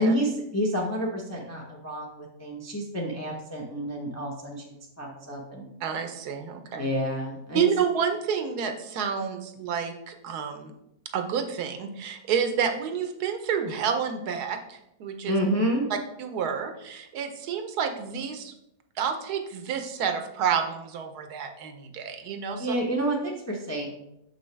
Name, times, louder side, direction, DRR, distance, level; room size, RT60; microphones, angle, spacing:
voice 1, 0.0-4.6 5.0-5.7 6.8-7.6 15.3-15.8 22.6-23.9, equal, 15° left, -2 dB, 0.5 m, -29 dB
voice 2, 5.8-6.9 7.5-10.7 11.1-15.3 15.9-18.5 19.0-22.7, right 7 dB, 70° right, 6 dB, 1.1 m, -29 dB
6.5 x 5.4 x 3.2 m, 0.83 s
omnidirectional pair, 1.8 m